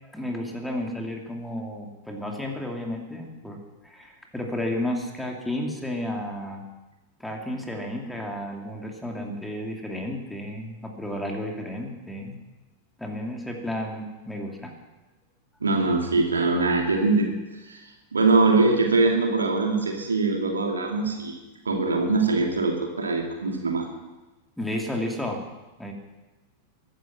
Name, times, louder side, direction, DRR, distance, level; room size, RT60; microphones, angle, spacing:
voice 1, 0.1-6.6 7.2-12.4 13.0-14.7 24.6-25.4 25.8-25.9, left 1 dB, 5° left, 1 dB, 2.8 m, -32 dB
voice 2, 15.6-17.3 17.7-17.8 18.1-21.4 21.6-23.9, right 3 dB, 75° right, 2 dB, 2.7 m, -22 dB
22.0 x 10.5 x 6.1 m, 1.1 s
figure-of-eight pair, 90°, 0 cm